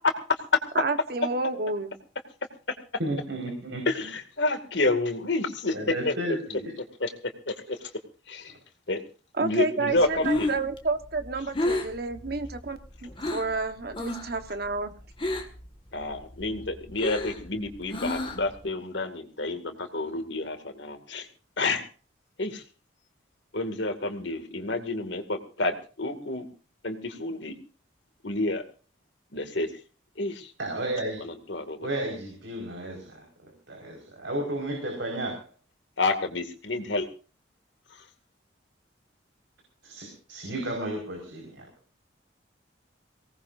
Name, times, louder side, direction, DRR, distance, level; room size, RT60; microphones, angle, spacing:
voice 1, 0.7-1.9 9.4-14.9, right 3 dB, 50° right, 9 dB, 1.3 m, -30 dB
voice 2, 3.0-4.1 5.7-6.7 8.5-8.6 30.6-31.2 31.8-35.5 39.8-41.7, right 1 dB, 70° right, 1 dB, 5.0 m, -33 dB
voice 3, 3.9-5.7 6.1-6.2 7.0-7.1 7.5-7.6 8.3-8.5 8.9-9.0 9.4-10.5 15.9-21.3 21.6-21.9 22.4-22.6 23.5-26.5 26.8-27.5 28.2-28.6 29.3-29.7 30.2-30.5 31.2-31.9 36.0-37.1, left 2 dB, 65° left, 7 dB, 2.3 m, -29 dB
Breathing, 10.0-13.6 13.9-14.4 14.6-15.7 16.0-18.6, left 1 dB, 25° left, 1.9 m, -31 dB
23.5 x 18.5 x 2.7 m, 0.36 s
head